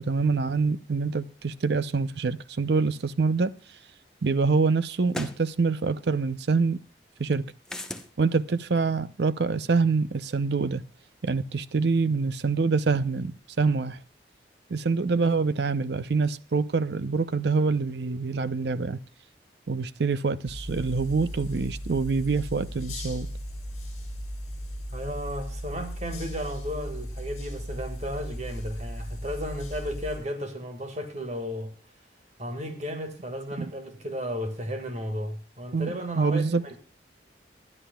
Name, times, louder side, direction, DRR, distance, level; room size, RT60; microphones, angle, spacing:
voice 1, 0.0-3.5 4.2-6.8 7.2-7.5 8.2-10.8 11.2-14.0 14.7-19.0 19.7-23.3 33.6-33.7 35.7-35.9 36.2-36.6, right 4 dB, 70° right, 0.6 m, -25 dB
sound 1, 3.7-3.8 5.1-5.4 7.7-8.1, left 1 dB, 5° left, 0.9 m, -35 dB
sound 2, 20.5-30.2, equal, 40° left, 5.9 m, -36 dB
voice 2, 24.9-31.7 32.4-36.4, equal, 40° right, 1.8 m, -34 dB
22.5 x 11.0 x 2.3 m
head